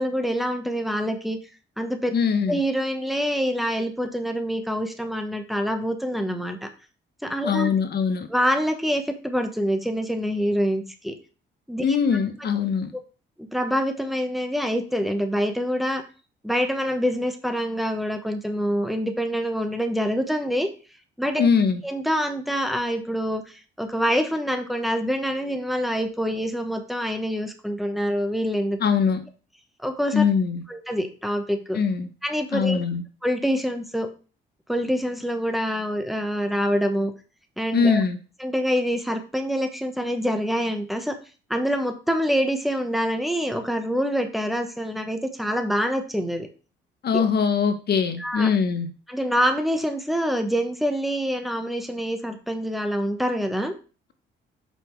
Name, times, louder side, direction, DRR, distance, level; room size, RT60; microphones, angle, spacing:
voice 1, 0.0-1.4 1.8-2.1 2.5-6.7 7.2-7.7 8.3-11.1 11.7-11.8 13.4-16.0 16.4-20.7 21.2-21.5 21.8-28.8 29.8-30.2 30.7-31.8 32.2-32.8 33.2-34.1 34.7-37.1 37.6-38.0 38.4-41.2 41.5-46.5 47.1-47.2 48.2-48.5 49.1-53.7, equal, ahead, 6 dB, 1.1 m, -26 dB
voice 2, 2.1-2.6 7.4-8.3 11.8-12.9 21.4-21.8 28.8-29.2 30.1-30.6 31.7-32.1 32.5-33.0 37.7-38.2 47.0-48.9, left 6 dB, 55° left, 8 dB, 1.1 m, -22 dB
5.5 x 4.2 x 4.6 m, 0.36 s
cardioid pair, 90°, 20 cm